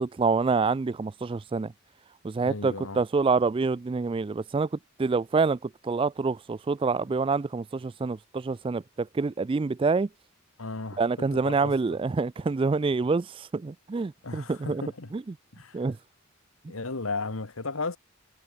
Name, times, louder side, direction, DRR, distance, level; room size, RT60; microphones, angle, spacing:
voice 1, 0.0-1.7 2.2-4.7 5.0-10.1 11.0-14.8 15.1-15.2 15.7-16.0, right 4 dB, 25° right, 0.3 m, -27 dB
voice 2, 2.4-3.0 10.6-11.0 11.4-12.0 14.2-15.1 15.5-15.8 16.7-18.0, left 3 dB, 80° left, 1.6 m, -35 dB
head